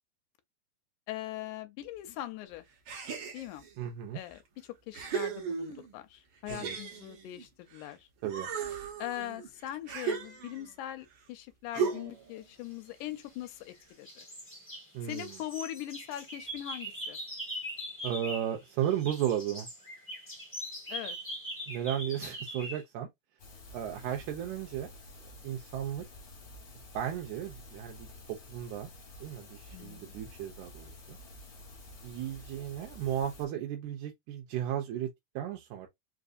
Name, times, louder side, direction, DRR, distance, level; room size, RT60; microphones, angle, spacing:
voice 1, 1.1-2.7 3.3-3.6 4.1-8.1 9.0-14.3 15.0-17.2 20.9-21.2 29.7-30.1, left 13 dB, 80° left, 2.0 m, -41 dB
sound 1, 2.9-3.7 4.4-4.5 4.9-6.0 6.5-7.9 8.2-10.8 11.7-12.3, right 6 dB, 65° right, 1.3 m, -36 dB
voice 2, 3.8-4.2 6.5-6.8 8.2-8.5 14.9-15.4 18.0-19.7 21.7-23.1 23.7-24.9 25.2-26.1 26.9-28.9 29.2-31.2 32.0-35.1 35.4-35.9, right 10 dB, 80° right, 2.0 m, -35 dB
sound 2, 12.9-13.7 14.0-18.6 18.8-22.8, equal, 10° left, 0.5 m, -41 dB
sound 3, 23.4-33.5, left 2 dB, 50° left, 1.1 m, -50 dB
4.8 x 2.5 x 2.5 m
omnidirectional pair, 3.6 m